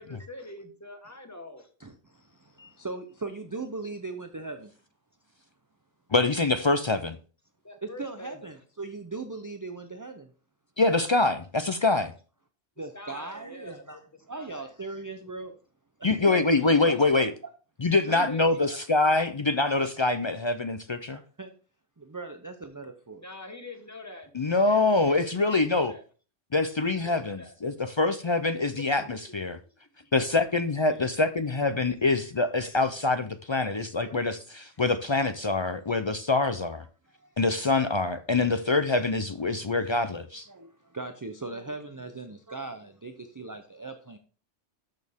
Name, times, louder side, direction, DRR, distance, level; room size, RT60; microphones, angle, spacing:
voice 1, 0.0-1.7 7.6-8.5 12.9-13.8 14.3-14.7 16.5-16.8 18.1-18.6 23.2-24.3 24.6-26.0 26.9-27.5 28.9-29.0, left 1 dB, 15° left, 1.5 m, -44 dB
voice 2, 1.8-4.7 7.8-10.3 12.8-15.6 16.0-16.4 16.8-17.2 18.0-18.2 18.6-18.8 21.1-21.5 22.0-23.2 29.0-29.1 30.9-31.1 34.0-34.3 37.1-37.4 39.5-39.6 40.5-44.2, right 3 dB, 20° right, 0.6 m, -39 dB
voice 3, 6.1-7.2 10.8-12.1 16.0-17.3 17.8-21.2 24.4-25.9 26.5-29.6 30.1-36.8 37.4-40.5, left 3 dB, 45° left, 0.3 m, -25 dB
13.0 x 6.4 x 3.6 m
omnidirectional pair, 1.2 m